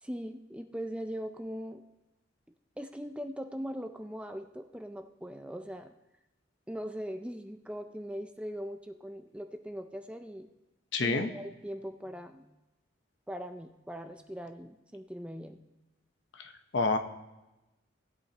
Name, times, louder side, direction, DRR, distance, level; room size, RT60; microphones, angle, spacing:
voice 1, 0.0-1.8 2.8-5.9 6.7-10.5 11.0-12.5 13.3-15.6, equal, 5° right, 6 dB, 0.5 m, -40 dB
voice 2, 10.9-11.3 16.4-17.0, left 3 dB, 60° left, 7 dB, 0.9 m, -29 dB
18.0 x 8.3 x 2.9 m, 1.0 s
head